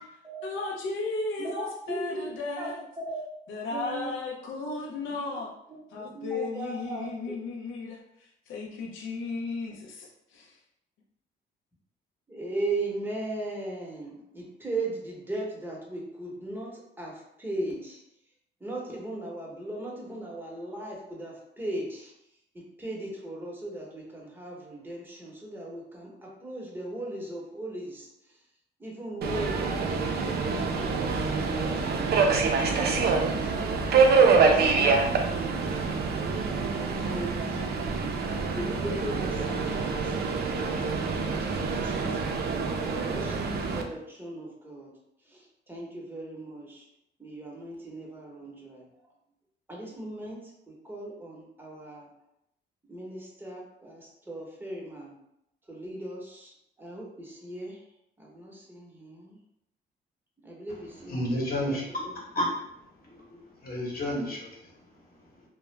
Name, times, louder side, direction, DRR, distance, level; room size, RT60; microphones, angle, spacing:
voice 1, 0.4-2.8 3.5-5.5 5.9-8.0 8.5-10.6, left 3 dB, 80° left, -1 dB, 0.5 m, -35 dB
voice 2, 1.4-2.3 2.6-3.2 3.7-4.1 4.5-4.7 5.1-5.2 5.7-7.4 12.3-18.0 18.6-22.1 22.5-28.4 28.8-30.9 31.5-44.9 45.2-46.9 47.2-48.9 49.7-52.1 52.9-55.1 55.7-57.8 58.2-59.4 60.4-61.4 61.7-61.8 62.0-62.2, right 2 dB, 10° right, -3 dB, 0.8 m, -38 dB
Subway metro underground, 29.2-43.8, right 4 dB, 55° right, 0.4 m, -26 dB
voice 3, 61.0-62.5 63.0-65.3, equal, 45° left, -4 dB, 1.0 m, -32 dB
2.3 x 2.0 x 3.0 m, 0.78 s
cardioid pair, 90°, 20 cm